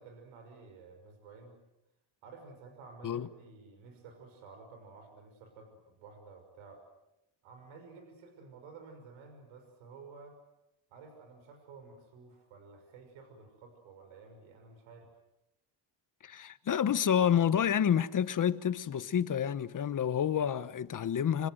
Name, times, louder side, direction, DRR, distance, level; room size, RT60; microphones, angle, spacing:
voice 1, 0.0-1.6 2.2-6.8 7.4-10.4 10.9-15.1, right 4 dB, 90° right, 6.0 m, -52 dB
voice 2, 16.2-21.5, left 9 dB, 40° left, 1.3 m, -29 dB
27.0 x 25.5 x 7.9 m
cardioid pair, 115°, 47 cm